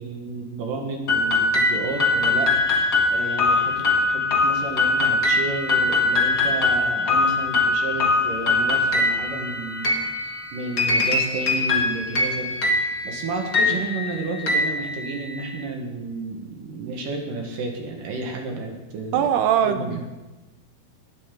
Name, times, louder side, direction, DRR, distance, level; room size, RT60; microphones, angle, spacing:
voice 1, 0.0-10.0 10.5-12.5 13.0-19.3 19.6-20.0, right 3 dB, 65° right, 2 dB, 2.7 m, -32 dB
sound 1, 1.1-15.5, left 3 dB, 75° left, 0.8 m, -22 dB
voice 2, 19.1-20.0, right 9 dB, 80° right, 8 dB, 2.8 m, -21 dB
19.0 x 9.0 x 3.7 m, 1.1 s
omnidirectional pair, 4.7 m